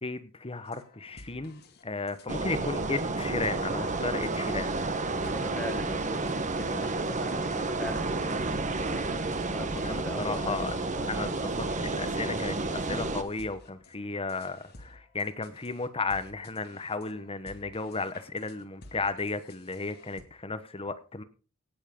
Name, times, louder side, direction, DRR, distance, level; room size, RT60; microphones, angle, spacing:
voice 1, 0.0-4.7 9.8-21.2, left 3 dB, 25° left, 12 dB, 1.2 m, -34 dB
sound 1, 0.7-20.2, left 2 dB, 45° left, 2.3 m, -53 dB
sound 2, 2.3-13.2, right 3 dB, 35° right, 1.3 m, -31 dB
voice 2, 5.2-6.3 6.6-9.1 9.5-11.3, left 1 dB, 10° left, 7 dB, 1.0 m, -40 dB
18.0 x 7.4 x 5.4 m, 0.36 s
head